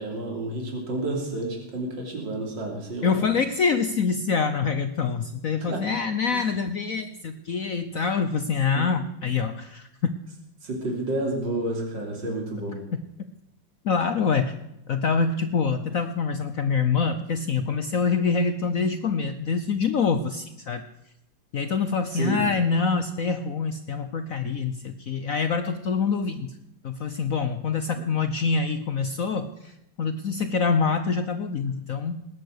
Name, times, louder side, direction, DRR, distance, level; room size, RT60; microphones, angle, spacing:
voice 1, 0.0-3.1 5.7-5.9 6.3-6.6 8.7-8.8 10.6-12.8 22.1-22.4, right 2 dB, 65° right, 0 dB, 3.8 m, -30 dB
voice 2, 3.0-10.1 13.8-14.6 14.9-20.9 21.5-26.6 26.8-32.3, left 5 dB, 65° left, 10 dB, 0.9 m, -25 dB
19.5 x 9.4 x 6.6 m, 0.86 s
omnidirectional pair, 2.2 m